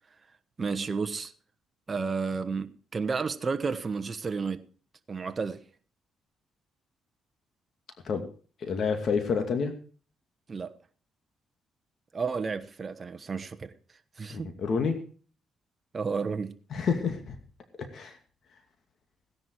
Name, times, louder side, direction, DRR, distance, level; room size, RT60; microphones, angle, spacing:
voice 1, 0.6-1.3 1.9-4.6 5.1-5.6 10.5-10.7 12.1-13.7 14.2-14.5 15.9-16.6, right 5 dB, 35° right, 1.2 m, -31 dB
voice 2, 8.6-9.7 14.3-15.0 16.7-17.4 17.9-18.2, left 5 dB, 55° left, 2.4 m, -28 dB
16.5 x 10.5 x 4.8 m
cardioid pair, 90°, 0 cm